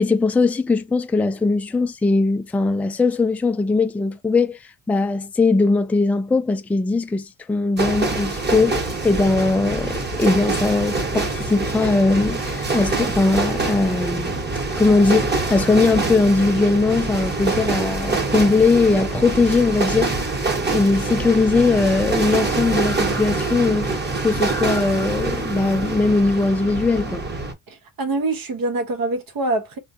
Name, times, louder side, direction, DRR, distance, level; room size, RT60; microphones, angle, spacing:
voice 1, 0.0-4.6 4.9-14.4 14.8-20.1 20.7-23.9 24.2-27.3, left 3 dB, 5° left, 0.3 m, -20 dB
sound 1, 7.8-27.5, right 3 dB, 25° right, 1.1 m, -25 dB
voice 2, 27.7-29.8, right 2 dB, 60° right, 1.0 m, -25 dB
3.5 x 2.3 x 2.6 m
cardioid pair, 95°, 39 cm